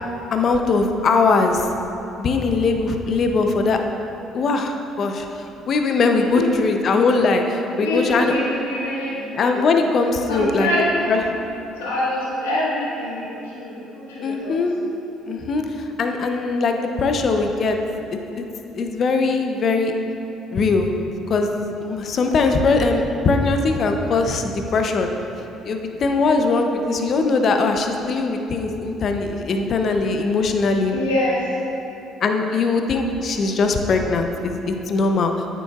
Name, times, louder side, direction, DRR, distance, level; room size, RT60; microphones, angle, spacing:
voice 1, 0.3-1.7 2.2-3.8 4.3-8.4 9.4-10.7 11.1-11.2 14.2-14.7 15.3-17.8 18.1-18.5 18.7-19.9 20.5-20.9 21.3-25.1 25.6-31.0 32.2-35.5, left 3 dB, 55° left, 4 dB, 0.6 m, -21 dB
voice 2, 6.1-6.4 7.8-9.4 10.2-11.1 11.8-14.5 30.9-31.6, left 1 dB, 90° left, -8 dB, 1.5 m, -25 dB
8.8 x 7.0 x 2.4 m, 2.9 s
hypercardioid pair, 60°, 0 cm